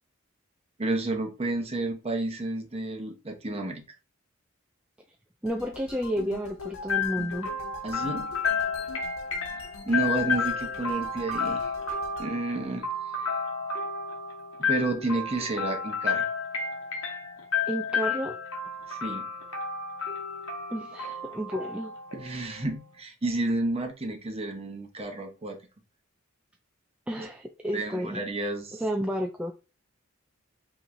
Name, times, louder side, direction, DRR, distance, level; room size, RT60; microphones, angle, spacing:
voice 1, 0.8-3.8 7.8-8.3 9.8-11.7 12.2-12.9 14.6-16.2 18.9-19.3 22.1-25.6 27.2-27.3 27.7-28.8, right 2 dB, 30° right, 4 dB, 0.9 m, -31 dB
voice 2, 5.4-7.5 17.6-18.4 20.7-21.9 27.1-28.2 28.7-29.5, equal, 5° right, 2 dB, 0.3 m, -31 dB
sound 1, 5.5-12.3, left 3 dB, 90° left, 0.7 m, -43 dB
sound 2, 6.9-22.7, left 5 dB, 75° left, 1.1 m, -31 dB
5.2 x 3.1 x 2.6 m, 0.31 s
head